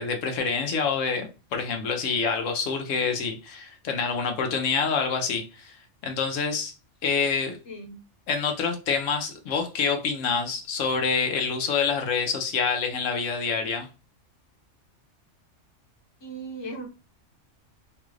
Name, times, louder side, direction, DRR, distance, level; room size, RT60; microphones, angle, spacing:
voice 1, 0.0-5.8 6.0-6.7 7.0-7.6 8.3-13.9, left 5 dB, 85° left, 1.1 m, -27 dB
voice 2, 7.7-8.0 16.2-16.9, right 2 dB, 25° left, 0.9 m, -37 dB
3.4 x 2.4 x 3.1 m
omnidirectional pair, 1.3 m